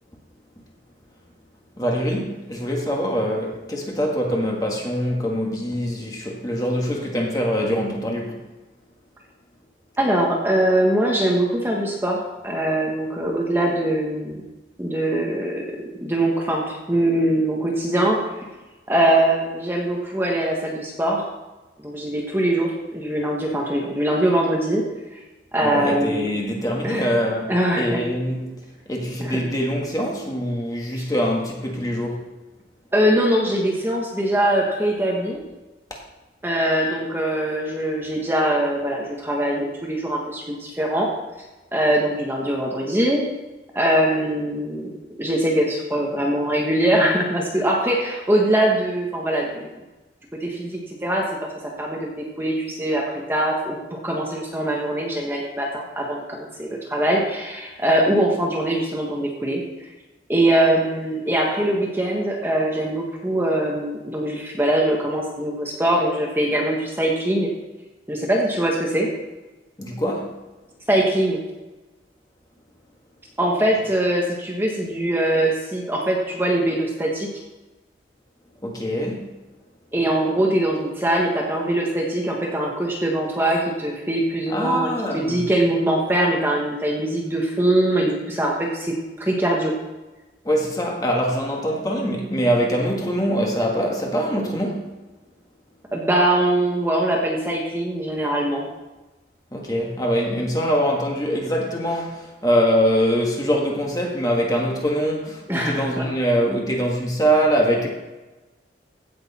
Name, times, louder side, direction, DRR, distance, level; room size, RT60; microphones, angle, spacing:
voice 1, 1.8-8.4 25.6-28.6 28.8-32.3 69.8-70.4 78.6-79.3 84.5-85.5 90.4-95.0 99.5-107.9, equal, 20° left, 0 dB, 1.7 m, -23 dB
voice 2, 10.0-14.4 14.8-15.7 16.0-18.2 18.9-21.2 21.8-24.8 25.1-25.2 25.5-26.3 26.8-27.1 27.5-28.0 29.2-29.4 30.9-31.1 32.9-35.4 36.4-41.1 41.7-43.2 43.7-44.9 45.2-49.7 50.4-51.2 51.6-59.6 60.3-67.5 68.1-69.1 70.9-71.4 73.4-77.3 79.9-89.7 95.9-98.7 105.5-106.0, right 1 dB, 10° right, -1 dB, 1.3 m, -22 dB
15.5 x 6.5 x 4.2 m, 1.1 s
head